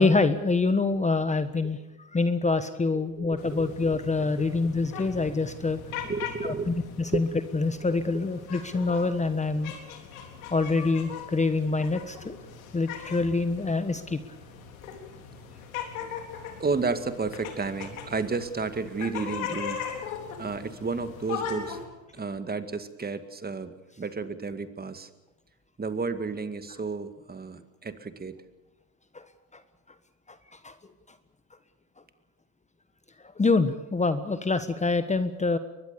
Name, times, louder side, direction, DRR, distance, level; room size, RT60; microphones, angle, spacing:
voice 1, 0.0-1.8 2.1-5.8 6.4-7.3 7.5-9.7 10.5-12.4 12.7-14.2 29.1-29.2 30.6-30.7 33.4-35.6, left 3 dB, 15° left, 11 dB, 1.4 m, -25 dB
voice 2, 3.2-3.7 4.4-4.5 4.9-5.1 6.0-6.7 7.1-7.2 8.1-8.2 16.6-19.8 20.4-21.8 22.1-25.1 25.8-28.4, right 4 dB, 25° right, 10 dB, 2.1 m, -32 dB
sound 1, 3.4-21.9, left 7 dB, 85° left, 3.9 m, -40 dB
23.5 x 21.0 x 7.0 m, 1.1 s
hypercardioid pair, 80°, 41 cm